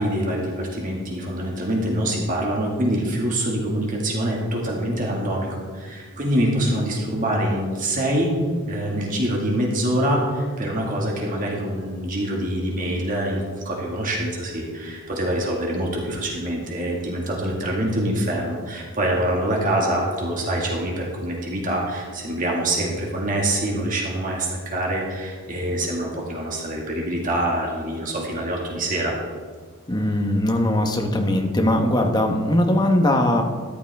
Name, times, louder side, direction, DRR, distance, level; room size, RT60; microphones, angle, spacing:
voice 1, 0.0-8.3 8.6-29.2, right 1 dB, 35° right, -2 dB, 1.9 m, -25 dB
voice 2, 29.9-33.4, left 1 dB, 20° left, 3 dB, 1.1 m, -20 dB
13.5 x 11.0 x 3.5 m, 1.5 s
head